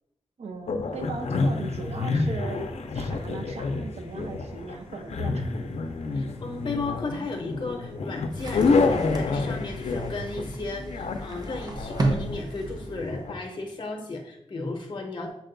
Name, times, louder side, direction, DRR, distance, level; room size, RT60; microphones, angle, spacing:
voice 1, 0.4-5.7, right 4 dB, 80° right, 5 dB, 0.6 m, -38 dB
sound 1, 0.7-13.3, left 3 dB, 85° left, 0.4 m, -29 dB
sound 2, 0.9-13.2, equal, 55° right, 1.4 m, -49 dB
voice 2, 6.1-15.3, left 3 dB, 45° left, 2 dB, 0.6 m, -35 dB
sound 3, 8.3-13.3, right 2 dB, 40° right, 0.6 m, -33 dB
5.9 x 2.2 x 3.8 m, 0.81 s
wide cardioid pair, 120°, 11 cm